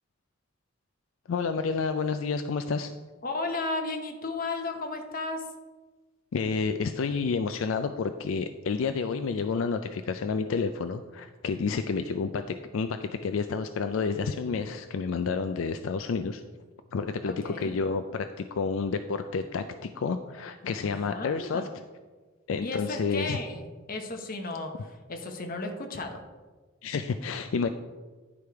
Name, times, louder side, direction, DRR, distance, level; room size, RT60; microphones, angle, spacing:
voice 1, 1.3-2.9 6.3-16.4 16.9-21.6 22.5-23.4 26.8-27.7, left 5 dB, 75° left, 8 dB, 0.4 m, -30 dB
voice 2, 3.2-5.5 17.3-17.7 20.8-21.7 22.6-26.2, left 3 dB, 45° left, 4 dB, 1.0 m, -34 dB
10.0 x 5.0 x 4.6 m, 1.3 s
head